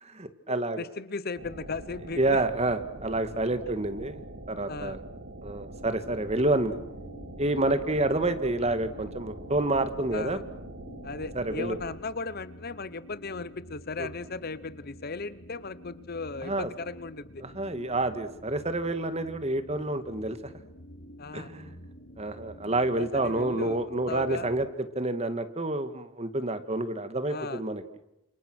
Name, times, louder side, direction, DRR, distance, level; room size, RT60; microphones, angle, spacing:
voice 1, 0.0-0.8 2.2-4.2 4.5-5.0 5.4-6.8 7.4-10.4 11.4-11.8 14.0-14.1 16.4-16.7 17.4-20.4 21.3-21.7 22.2-27.8, right 2 dB, 30° right, 10 dB, 2.0 m, -28 dB
voice 2, 0.8-2.4 4.7-5.0 7.6-7.8 10.1-10.4 11.0-17.4 21.2-21.5 23.0-24.5 27.3-27.6, left 4 dB, 45° left, 16 dB, 0.9 m, -37 dB
sound 1, 1.4-12.0, right 1 dB, 65° right, 3.1 m, -44 dB
sound 2, 5.7-24.7, equal, 70° left, 4.7 m, -49 dB
30.0 x 28.0 x 6.3 m, 0.87 s
head